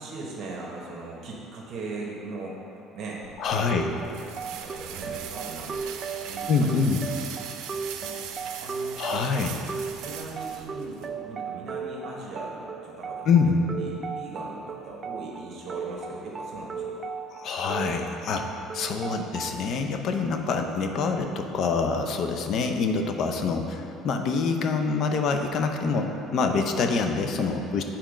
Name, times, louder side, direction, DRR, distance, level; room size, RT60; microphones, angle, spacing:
voice 1, 0.0-4.0 4.6-6.8 7.1-7.4 8.0-8.2 8.6-9.6 10.0-17.0, right 3 dB, 55° right, -3 dB, 1.1 m, -39 dB
sound 1, 3.2-11.1, right 8 dB, 75° right, 0.6 m, -40 dB
voice 2, 3.4-3.9 6.5-7.0 9.0-9.6 13.3-13.6 17.4-27.8, left 4 dB, 55° left, 5 dB, 0.6 m, -25 dB
sound 2, 3.7-19.7, right 5 dB, 30° right, 0.3 m, -36 dB
7.5 x 4.3 x 5.0 m, 2.8 s
cardioid pair, 115°, 0 cm